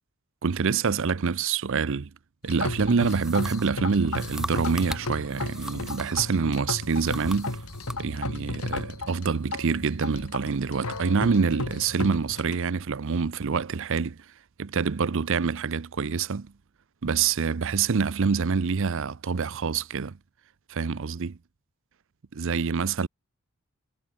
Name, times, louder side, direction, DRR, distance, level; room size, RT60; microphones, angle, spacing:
voice 1, 0.4-2.1 2.4-7.6 8.0-14.2 14.6-16.5 17.0-20.1 20.7-21.4 22.4-23.1, right 5 dB, 60° right, 0.6 m, -26 dB
sound 1, 2.4-12.5, left 2 dB, 75° left, 3.1 m, -34 dB
sound 2, 3.0-6.3 6.7-8.0, right 1 dB, 5° right, 0.8 m, -39 dB
sound 3, 6.6-12.3, equal, 40° right, 3.8 m, -50 dB
head